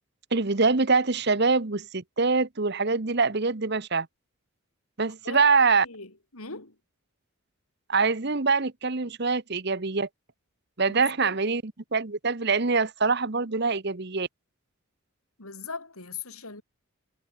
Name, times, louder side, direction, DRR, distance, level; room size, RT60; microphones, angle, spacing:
voice 1, 0.3-4.1 5.0-5.9 7.9-10.1 10.8-14.3, right 4 dB, 50° right, 1.1 m, -24 dB
voice 2, 5.8-6.8 11.0-11.4 15.4-16.6, left 4 dB, 80° left, 5.1 m, -40 dB
head